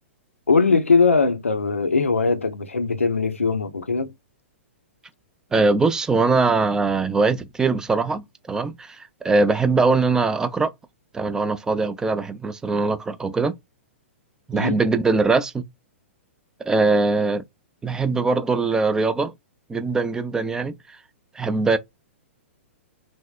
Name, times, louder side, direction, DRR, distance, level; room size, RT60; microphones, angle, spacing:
voice 1, 0.5-4.1 14.5-14.8, left 4 dB, 80° left, 0.5 m, -20 dB
voice 2, 5.5-9.0 9.2-10.7 11.1-13.6 14.5-15.6 16.7-17.4 17.8-19.3 19.7-20.7 21.4-21.8, right 3 dB, 10° right, 0.4 m, -21 dB
3.4 x 2.0 x 2.3 m
figure-of-eight pair, 110°, 7 cm